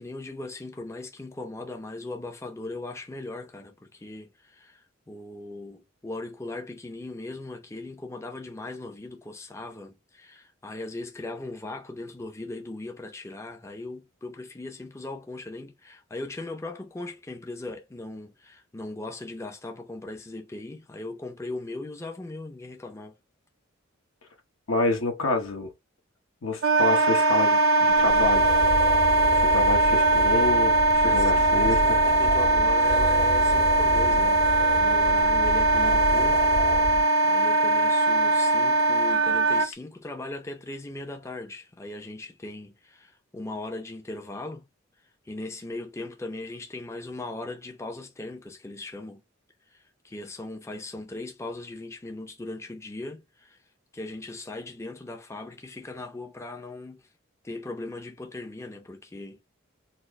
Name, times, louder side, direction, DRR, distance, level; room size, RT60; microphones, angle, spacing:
voice 1, 0.0-23.1 30.9-34.4 34.8-36.8 37.2-44.6 45.2-49.2 49.7-53.6 53.9-57.1 57.4-59.4, left 2 dB, 15° left, 0.5 m, -39 dB
voice 2, 24.7-25.7 26.4-28.5 29.3-32.0, left 2 dB, 80° left, 1.1 m, -28 dB
Wind instrument woodwind instrument, 26.6-39.7, right 2 dB, 75° right, 0.5 m, -21 dB
sound 1, 27.9-37.0, equal, 45° left, 0.9 m, -31 dB
4.1 x 2.0 x 3.4 m
head